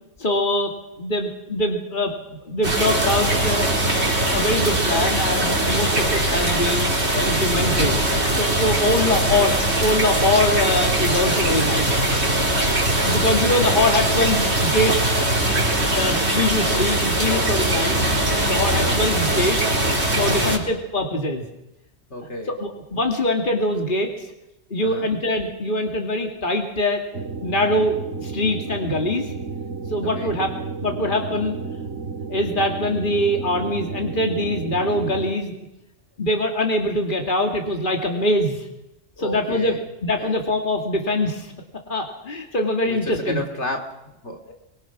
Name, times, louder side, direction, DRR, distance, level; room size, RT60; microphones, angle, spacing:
voice 1, 0.2-0.7 1.0-3.7 4.0-6.9 7.2-8.0 8.3-12.0 12.6-15.2 15.9-18.0 18.4-19.8 20.2-21.4 22.6-24.1 24.7-27.0 27.4-29.3 29.9-30.5 30.8-31.5 32.3-35.5 36.2-38.6 39.2-39.7 40.0-41.5 41.9-43.4, left 1 dB, 45° left, 2 dB, 2.7 m, -23 dB
sound 1, 2.6-20.6, right 1 dB, 65° right, 4.4 m, -21 dB
voice 2, 8.9-9.2 17.7-18.1 18.7-19.0 20.3-20.6 22.1-22.5 24.8-25.1 30.0-30.3 39.2-39.8 40.2-40.4 42.8-44.5, left 1 dB, 75° left, 2 dB, 3.4 m, -32 dB
sound 2, 27.1-35.3, right 4 dB, 90° right, 2.3 m, -32 dB
24.5 x 24.0 x 6.1 m, 0.90 s
omnidirectional pair, 1.2 m